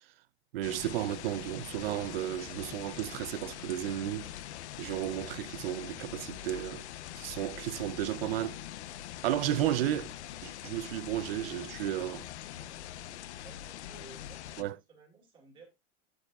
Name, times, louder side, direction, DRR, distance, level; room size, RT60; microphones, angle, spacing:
voice 1, 0.5-4.3 4.8-6.8 7.2-8.6 9.2-10.2 10.4-12.3 14.6-14.8, right 13 dB, 60° right, 0.5 m, -33 dB
sound 1, 0.6-14.6, left 12 dB, 80° left, 0.8 m, -43 dB
voice 2, 13.4-15.7, right 3 dB, 15° right, 2.3 m, -56 dB
9.1 x 7.6 x 2.4 m
supercardioid pair, 175°, 33 cm